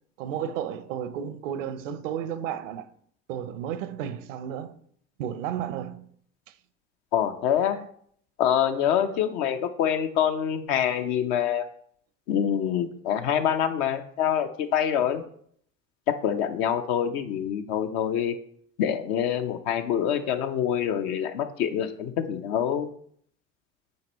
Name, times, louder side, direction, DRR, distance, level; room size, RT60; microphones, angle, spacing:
voice 1, 0.2-2.9 3.3-4.8 5.2-6.1 6.5-6.6 7.7-7.8 8.6-9.4 10.2-10.4 10.8-11.1 14.8-15.2, right 9 dB, 70° right, 0.7 m, -34 dB
voice 2, 7.1-7.9 8.4-11.6 12.3-15.2 16.2-18.3 18.8-22.9, left 9 dB, 60° left, 0.8 m, -26 dB
9.5 x 4.4 x 3.0 m
hypercardioid pair, 65°, 40 cm